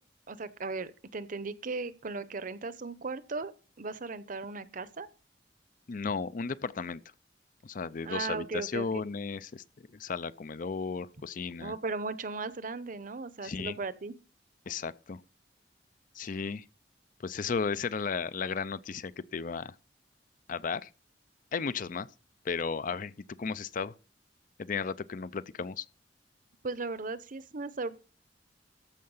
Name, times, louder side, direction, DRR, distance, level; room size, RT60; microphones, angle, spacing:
voice 1, 0.3-3.5 3.8-5.1 8.0-9.0 11.6-14.1 26.6-28.0, right 3 dB, 50° right, 0.8 m, -37 dB
voice 2, 5.9-7.0 7.6-9.6 9.9-11.7 13.4-13.7 14.7-15.2 16.1-16.6 17.2-19.7 20.5-20.9 21.5-22.1 22.4-23.1 23.4-23.9 24.6-25.9, left 5 dB, 50° left, 0.5 m, -34 dB
14.0 x 5.7 x 5.5 m
head